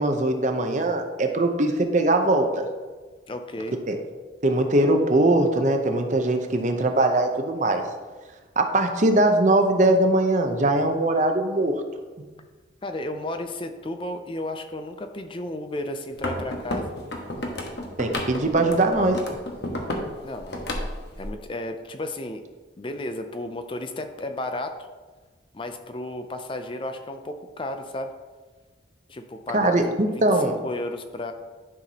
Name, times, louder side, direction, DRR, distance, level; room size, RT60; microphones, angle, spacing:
voice 1, 0.0-2.6 3.9-4.0 4.4-7.8 8.6-11.8 18.0-19.2 29.5-30.6, right 2 dB, 40° right, 5 dB, 0.7 m, -21 dB
voice 2, 3.3-3.8 12.8-16.9 20.2-20.7 21.2-22.4 22.8-24.9 25.5-28.1 29.1-31.3, left 1 dB, 25° left, 7 dB, 0.4 m, -33 dB
sound 1, 16.1-20.1 20.3-21.3, left 1 dB, 60° left, 1.2 m, -31 dB
11.0 x 5.8 x 2.9 m, 1.3 s
head